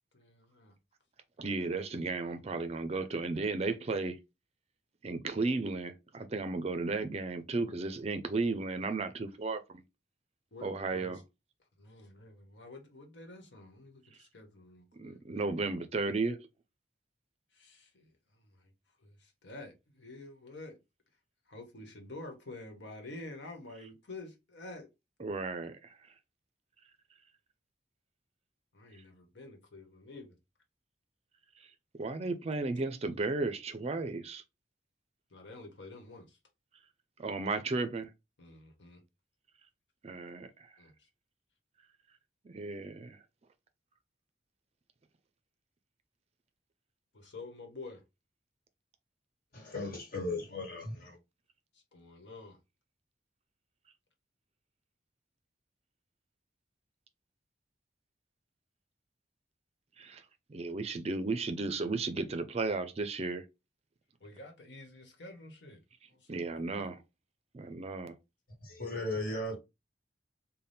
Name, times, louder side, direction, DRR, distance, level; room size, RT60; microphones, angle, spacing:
voice 1, 0.1-0.8 10.5-11.2 11.8-15.2 17.5-18.7 19.0-20.8 21.5-24.9 28.7-30.3 35.3-36.4 38.4-39.0 40.8-41.1 47.1-48.0 51.7-52.6 64.2-65.8 66.1-66.9, left 2 dB, 85° left, 1.1 m, -49 dB
voice 2, 1.4-4.2 5.0-9.8 10.6-11.2 14.9-16.4 25.2-25.8 32.0-34.4 37.2-38.1 40.0-40.7 42.4-43.2 60.0-60.2 60.5-63.4 66.3-67.0 67.5-68.2, right 3 dB, 35° right, 0.4 m, -34 dB
voice 3, 49.5-51.2 68.6-69.6, left 2 dB, 55° left, 1.6 m, -36 dB
4.1 x 2.2 x 3.4 m
head